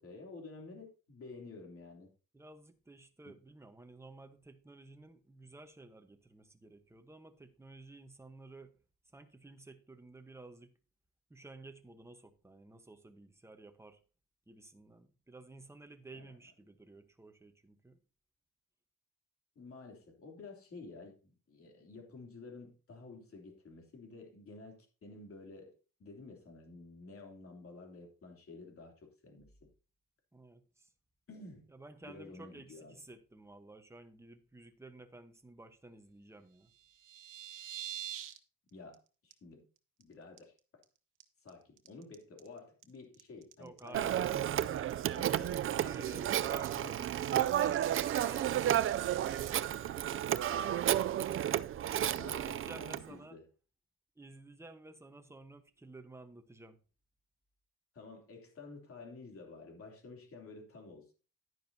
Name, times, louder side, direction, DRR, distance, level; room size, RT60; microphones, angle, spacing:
voice 1, 0.0-2.1 16.1-16.3 19.5-29.7 31.3-31.7 32.0-32.9 38.7-39.7 40.0-40.8 41.4-44.6 45.1-46.1 46.8-46.9 49.2-49.3 50.1-51.4 52.2-53.5 57.9-61.1, left 3 dB, 45° left, 3.0 m, -51 dB
voice 2, 2.3-8.8 9.1-10.7 11.3-14.0 14.5-18.0 30.3-30.9 31.7-36.7 43.6-44.4 45.8-48.7 52.3-53.4 54.2-56.8, right 2 dB, 10° right, 1.1 m, -53 dB
sound 1, 36.7-38.4 38.7-38.9 39.3-39.4 39.8-40.0 40.4-40.8 41.2-49.5, right 11 dB, 80° right, 1.2 m, -48 dB
Telephone, 43.9-53.0, right 11 dB, 45° right, 0.4 m, -32 dB
11.0 x 10.0 x 2.8 m
cardioid pair, 125°, 31 cm